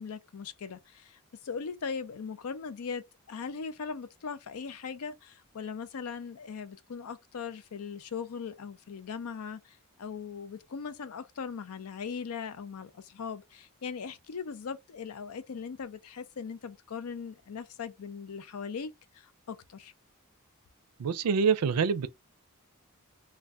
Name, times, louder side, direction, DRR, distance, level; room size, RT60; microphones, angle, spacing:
voice 1, 0.0-19.9, left 6 dB, 70° left, 0.5 m, -39 dB
voice 2, 21.0-22.1, right 6 dB, 90° right, 0.5 m, -26 dB
2.6 x 2.2 x 3.3 m
head